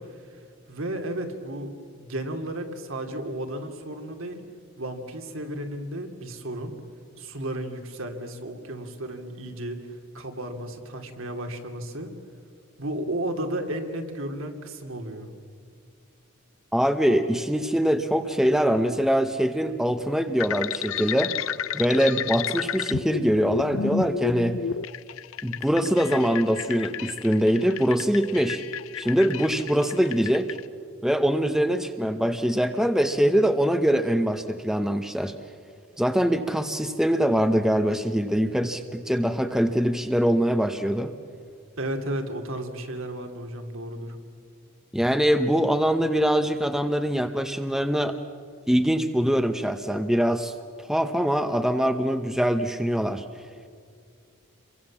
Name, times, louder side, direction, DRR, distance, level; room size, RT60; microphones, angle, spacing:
voice 1, 0.0-4.4 4.8-6.7 7.2-12.1 12.8-15.3 41.8-44.2, right 1 dB, 65° right, 5 dB, 2.8 m, -33 dB
voice 2, 16.7-21.4 21.7-24.6 25.4-28.6 29.0-30.6 31.0-35.3 36.0-41.1 44.9-48.2 48.7-50.5 50.9-53.2, equal, ahead, 7 dB, 0.8 m, -23 dB
sound 1, 20.4-30.6, left 7 dB, 70° left, 0.6 m, -32 dB
29.0 x 23.5 x 7.4 m, 2.2 s
head